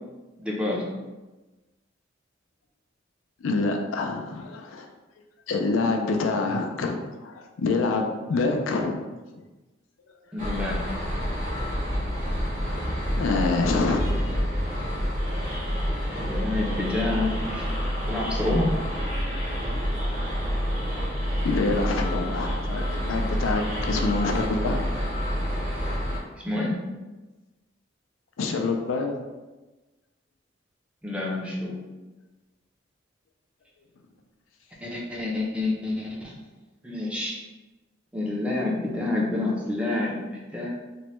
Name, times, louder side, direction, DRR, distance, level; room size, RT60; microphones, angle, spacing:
voice 1, 0.4-0.9 10.3-10.8 14.0-14.2 14.5-14.6 16.1-17.7 18.1-18.8 26.3-26.8 31.0-31.8 34.8-36.4 36.8-37.4 38.1-40.2 40.5-40.7, left 2 dB, 5° right, -4 dB, 0.5 m, -28 dB
voice 2, 3.4-4.9 5.5-9.0 13.2-14.0 21.4-24.8 28.4-29.1, left 3 dB, 85° left, 3 dB, 0.4 m, -26 dB
sound 1, 10.4-26.2, equal, 40° right, 0.9 m, -28 dB
3.0 x 2.2 x 3.0 m, 1.2 s
head